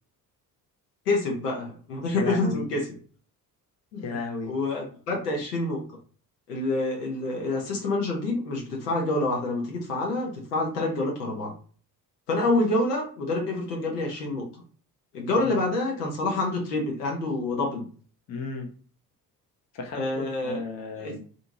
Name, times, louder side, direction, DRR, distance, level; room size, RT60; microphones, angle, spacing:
voice 1, 1.1-2.8 3.9-4.1 4.4-5.8 6.5-11.5 12.3-14.4 15.1-17.9 19.9-20.6 21.0-21.2, left 2 dB, 75° left, -1 dB, 0.9 m, -27 dB
voice 2, 2.1-2.7 4.0-4.5 15.4-15.6 18.3-18.7 19.7-21.2, left 4 dB, 35° left, 3 dB, 0.7 m, -34 dB
2.7 x 2.6 x 2.6 m, 0.41 s
figure-of-eight pair, 45°, 47 cm